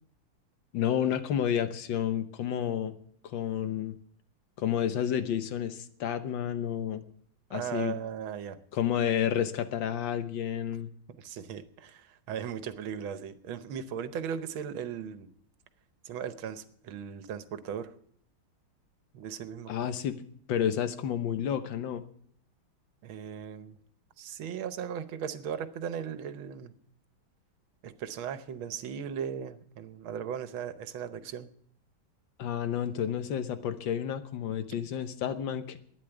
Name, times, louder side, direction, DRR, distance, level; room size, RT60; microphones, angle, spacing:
voice 1, 0.7-3.0 3.2-4.0 4.6-7.0 7.5-8.0 8.7-10.9 19.7-20.2 20.5-22.0 32.4-35.8, left 9 dB, 70° left, 10 dB, 1.7 m, -30 dB
voice 2, 7.5-8.6 11.1-15.3 16.1-17.9 19.1-19.9 23.0-23.8 24.2-26.7 27.8-31.5, right 8 dB, 80° right, 12 dB, 1.7 m, -37 dB
12.0 x 10.0 x 8.0 m, 0.62 s
omnidirectional pair, 2.2 m